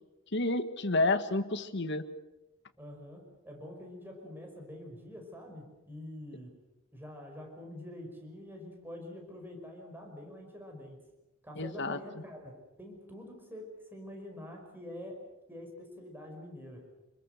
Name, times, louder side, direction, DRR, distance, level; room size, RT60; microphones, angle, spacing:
voice 1, 0.3-2.0 11.6-12.0, left 2 dB, 60° left, 10 dB, 1.7 m, -30 dB
voice 2, 2.8-6.5 6.9-11.0 11.4-15.2 15.5-16.8, left 1 dB, 10° right, 2 dB, 5.4 m, -46 dB
28.5 x 21.5 x 6.7 m, 1.0 s
head